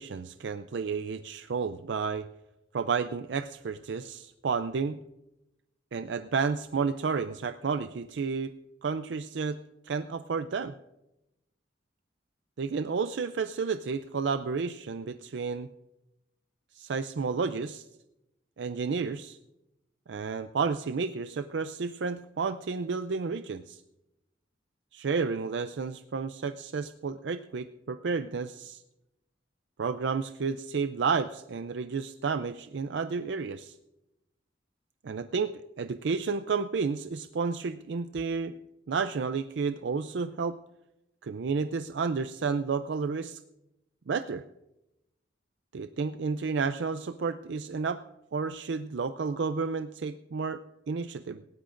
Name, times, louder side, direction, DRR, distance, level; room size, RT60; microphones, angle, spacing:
voice 1, 0.0-2.3 2.7-5.0 5.9-8.5 8.8-9.6 9.8-10.7 12.6-15.7 16.7-17.8 18.6-19.4 20.1-23.8 24.9-28.8 29.8-33.7 35.0-38.6 38.9-40.6 41.2-43.4 44.1-44.4 45.7-48.0 48.3-50.6 50.9-51.4, right 5 dB, 70° right, 10 dB, 0.4 m, -31 dB
19.0 x 17.5 x 2.5 m, 0.92 s
head